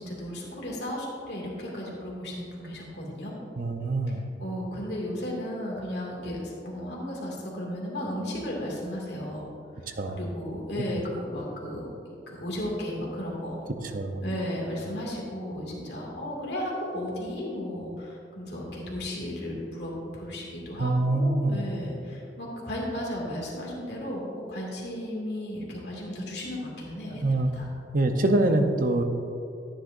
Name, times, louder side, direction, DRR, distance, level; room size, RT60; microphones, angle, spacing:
voice 1, 0.0-3.3 4.4-9.5 9.7-13.6 14.2-27.7, left 1 dB, 65° left, -3 dB, 2.3 m, -34 dB
voice 2, 3.6-4.2 10.0-10.2 13.9-14.2 20.8-21.6 27.2-27.5 27.9-29.0, right 2 dB, 50° right, 6 dB, 0.8 m, -24 dB
13.5 x 10.0 x 2.6 m, 2.6 s
head